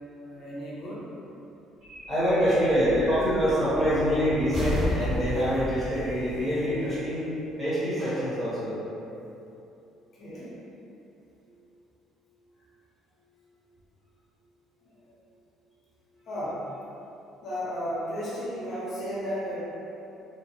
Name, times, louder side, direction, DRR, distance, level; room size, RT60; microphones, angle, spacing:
voice 1, 0.2-1.0 10.1-10.6 16.3-16.6 17.4-19.6, equal, 45° left, -8 dB, 0.7 m, -34 dB
sound 1, 1.8-7.5, left 1 dB, 50° right, 1.4 m, -34 dB
voice 2, 2.1-7.3 7.6-8.7, equal, 20° right, -11 dB, 1.0 m, -25 dB
2.9 x 2.0 x 2.8 m, 2.9 s
cardioid pair, 140°, 0 cm